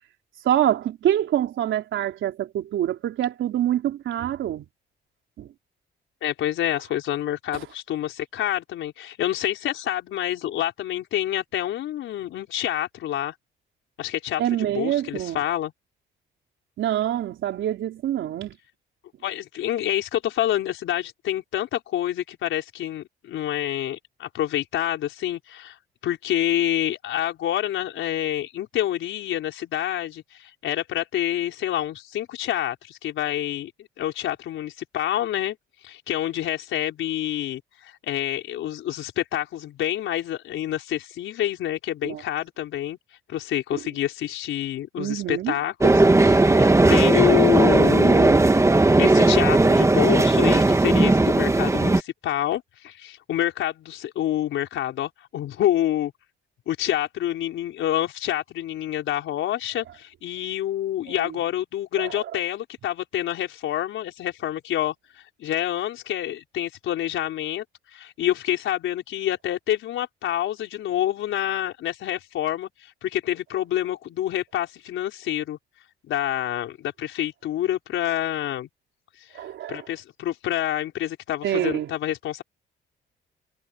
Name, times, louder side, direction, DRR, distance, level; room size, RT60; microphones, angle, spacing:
voice 1, 0.4-4.7 5.4-5.5 7.5-7.6 14.4-15.4 16.8-18.6 42.0-42.2 43.7-43.8 45.0-45.5 61.1-61.4 62.0-62.4 79.3-79.9 81.4-81.9, right 11 dB, 75° right, 3.8 m, -26 dB
voice 2, 6.2-13.3 14.0-15.7 19.2-25.8 26.0-33.7 34.0-35.6 35.8-43.0 43.3-48.4 49.0-56.1 56.7-67.6 67.9-75.6 76.0-78.7 79.7-82.4, left 12 dB, 80° left, 4.6 m, -27 dB
sound 1, 45.8-52.0, right 2 dB, 15° right, 1.5 m, -17 dB
cardioid pair, 90°, 20 cm